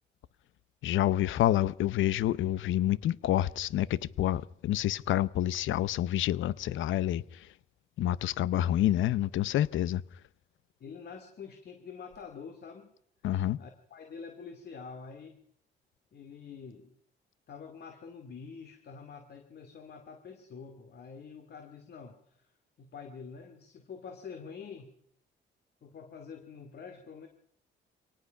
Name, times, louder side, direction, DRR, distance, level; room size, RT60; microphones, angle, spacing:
voice 1, 0.8-7.5 8.0-10.0 13.2-13.6, left 13 dB, 80° left, 0.8 m, -28 dB
voice 2, 10.8-12.9 13.6-15.4 16.1-16.9 17.5-22.5 22.8-24.9 25.8-27.3, left 5 dB, 55° left, 2.5 m, -46 dB
24.0 x 18.5 x 5.8 m
cardioid pair, 90°, 20 cm